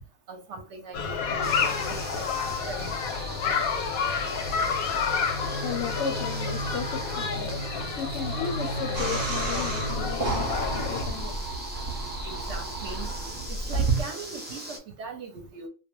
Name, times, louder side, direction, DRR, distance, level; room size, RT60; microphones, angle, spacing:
voice 1, 0.3-2.9 12.2-13.1 13.7-15.7, right 4 dB, 65° right, 0.8 m, -40 dB
sound 1, 0.9-11.0, left 4 dB, 90° left, 1.0 m, -29 dB
sound 2, 1.4-14.8, right 1 dB, 15° right, 0.3 m, -40 dB
voice 2, 5.2-12.3, left 7 dB, 65° left, 0.7 m, -36 dB
sound 3, 8.9-14.0, right 3 dB, 35° right, 0.9 m, -30 dB
2.3 x 2.1 x 2.9 m
omnidirectional pair, 1.4 m